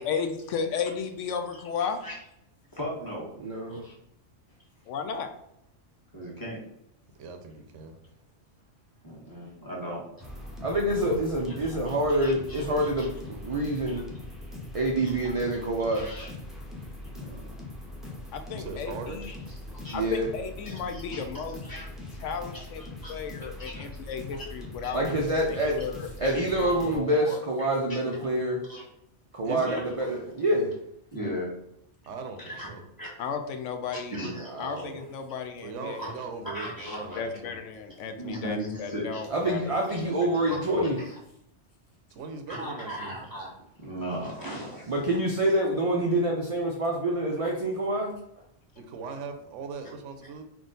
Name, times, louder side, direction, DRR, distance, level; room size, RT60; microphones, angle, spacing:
voice 1, 0.0-2.0 4.9-5.3 18.3-19.3 19.9-21.5 22.2-22.8 23.1-25.1 25.5-27.4 33.2-34.2 34.6-36.1 37.2-39.7 40.4-40.9, left 6 dB, 80° left, 6 dB, 0.9 m, -34 dB
voice 2, 2.7-3.3 3.7-3.9 6.1-6.6 9.0-10.0 11.5-13.1 13.9-14.0 15.0-15.3 15.8-16.3 17.1-17.6 19.3-19.4 19.8-19.9 20.6-21.9 22.8-23.1 23.6-23.8 24.3-24.4 24.8-24.9 25.8-25.9 26.6-26.7 27.6-28.3 28.7-28.8 29.7-29.8 31.1-31.5 32.5-32.7 33.0-33.1 34.1-34.7 36.0-36.1 36.5-37.2 38.2-39.2 40.5-41.1 42.5-43.5 43.8-44.9, equal, 20° left, -5 dB, 1.3 m, -38 dB
voice 3, 3.4-3.8 10.6-14.1 14.7-16.1 19.9-20.3 24.9-25.8 26.2-28.6 29.3-30.7 34.5-35.0 39.3-41.0 44.9-48.1, right 1 dB, 65° right, -1 dB, 0.3 m, -26 dB
voice 4, 7.2-8.0 18.5-19.2 29.4-29.8 32.1-32.8 35.6-37.6 42.1-43.2 48.8-50.4, right 4 dB, 85° right, 6 dB, 0.9 m, -39 dB
sound 1, 10.2-27.0, left 1 dB, ahead, 0.4 m, -41 dB
3.7 x 2.4 x 3.8 m, 0.77 s
omnidirectional pair, 1.2 m